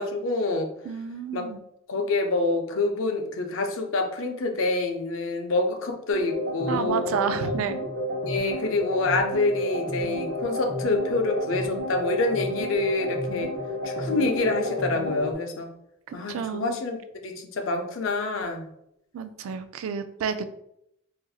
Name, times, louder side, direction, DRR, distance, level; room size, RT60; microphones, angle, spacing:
voice 1, 0.0-0.7 1.3-1.5 1.9-7.6 8.3-13.5 13.8-15.7 16.1-17.0 17.2-18.7, left 2 dB, 75° left, 4 dB, 0.5 m, -27 dB
voice 2, 0.8-1.6 6.7-7.8 16.1-16.8 19.1-20.4, right 7 dB, 90° right, 10 dB, 0.3 m, -30 dB
sound 1, 6.1-15.3, left 1 dB, 55° right, 0.8 m, -31 dB
3.9 x 2.5 x 2.3 m, 0.78 s
head